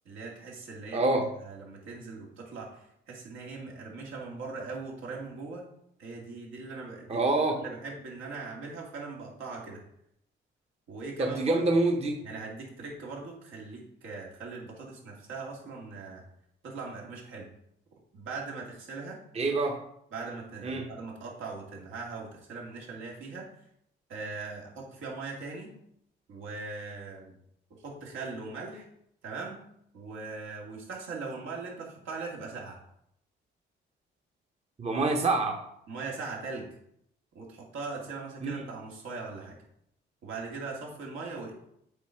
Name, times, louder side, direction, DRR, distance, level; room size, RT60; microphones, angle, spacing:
voice 1, 0.1-1.0 1.5-5.7 6.0-7.2 7.6-9.8 10.9-11.5 12.2-16.2 16.6-17.5 18.1-19.2 20.1-23.5 24.1-25.7 26.3-27.3 27.7-28.9 29.2-29.6 29.9-32.8 35.1-35.2 35.9-36.7 37.3-39.6 40.2-41.5, right 4 dB, 80° right, -2 dB, 2.3 m, -40 dB
voice 2, 0.9-1.3 7.1-7.6 11.2-12.2 19.3-19.8 20.6-20.9 34.8-35.6 38.4-38.7, right 2 dB, 30° right, 3 dB, 0.9 m, -26 dB
8.0 x 4.2 x 4.6 m, 0.74 s
cardioid pair, 90°, 20 cm